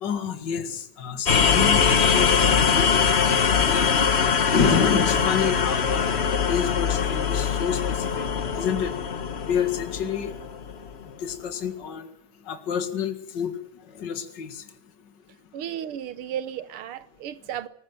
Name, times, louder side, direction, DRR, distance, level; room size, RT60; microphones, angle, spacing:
voice 1, 0.0-2.9 3.2-4.1 4.5-6.1 6.5-8.3 8.5-8.9 9.5-10.4 11.2-12.1 12.5-13.5 14.0-14.6, left 7 dB, 55° left, 2.4 m, -28 dB
sound 1, 1.3-11.0, left 6 dB, 40° left, 1.0 m, -22 dB
voice 2, 15.5-17.7, right 10 dB, 85° right, 2.0 m, -34 dB
20.5 x 19.5 x 7.7 m
omnidirectional pair, 2.4 m